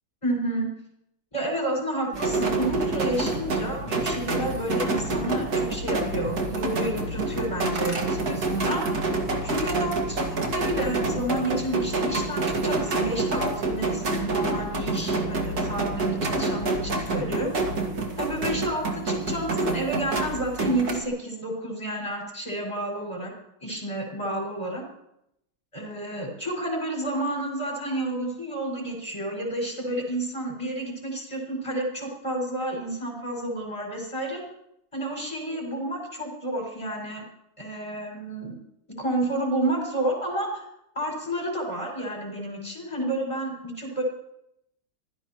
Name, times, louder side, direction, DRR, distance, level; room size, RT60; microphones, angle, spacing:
voice 1, 0.2-0.7 1.3-8.9 9.4-10.2 10.5-17.5 18.2-23.3 23.6-24.8 25.7-34.4 34.9-37.2 37.6-38.6 39.0-40.6 40.9-44.0, right 1 dB, 15° left, -1 dB, 6.2 m, -30 dB
sound 1, 2.1-21.0, right 2 dB, 55° right, 2.6 m, -27 dB
26.0 x 16.0 x 3.1 m, 0.79 s
omnidirectional pair, 2.0 m